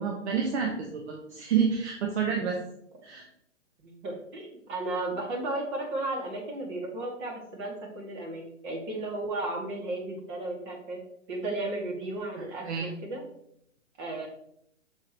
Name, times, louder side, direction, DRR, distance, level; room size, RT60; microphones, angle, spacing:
voice 1, 0.0-2.6 3.0-3.2 12.4-12.9, right 6 dB, 55° right, 1 dB, 1.3 m, -29 dB
voice 2, 3.8-11.0 11.3-13.2 14.0-14.3, right 2 dB, 35° right, 0 dB, 2.3 m, -34 dB
6.7 x 6.3 x 3.0 m, 0.71 s
hypercardioid pair, 135°, 39 cm